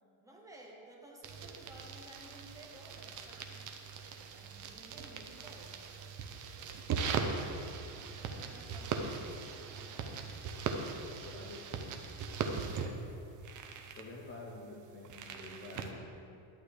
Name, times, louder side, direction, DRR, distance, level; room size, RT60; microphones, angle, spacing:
voice 1, 0.2-3.6 4.3-5.9 8.4-10.3, right 1 dB, 5° right, -2 dB, 0.8 m, -55 dB
sound 1, 1.2-15.9, right 5 dB, 40° right, 0.7 m, -40 dB
voice 2, 7.7-8.1 11.1-12.0 14.0-16.5, left 2 dB, 25° left, -1 dB, 0.5 m, -49 dB
11.5 x 7.9 x 3.4 m, 2.6 s
cardioid pair, 175°, 47 cm